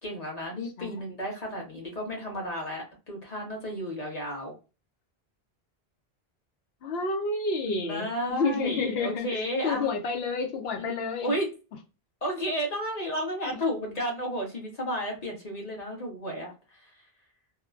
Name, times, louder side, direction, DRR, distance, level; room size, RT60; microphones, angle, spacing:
voice 1, 0.0-4.5 7.6-9.9 10.8-11.5 12.2-16.5, equal, 40° left, -1 dB, 1.2 m, -32 dB
voice 2, 0.6-1.0 6.8-11.3 13.5-13.6, left 4 dB, 80° left, 4 dB, 0.9 m, -30 dB
2.9 x 2.1 x 2.3 m, 0.32 s
omnidirectional pair, 1.0 m